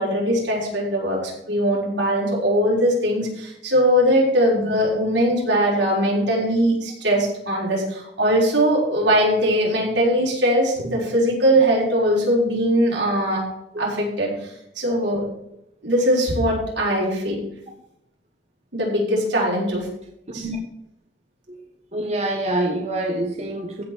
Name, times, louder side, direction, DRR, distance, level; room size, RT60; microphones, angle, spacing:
voice 1, 0.0-13.4 13.8-15.3 15.8-17.4 18.7-19.9 20.3-20.5, equal, 90° right, -4 dB, 5.9 m, -21 dB
voice 2, 21.9-23.8, right 1 dB, 40° right, 1 dB, 1.5 m, -26 dB
15.5 x 5.3 x 7.3 m, 0.79 s
head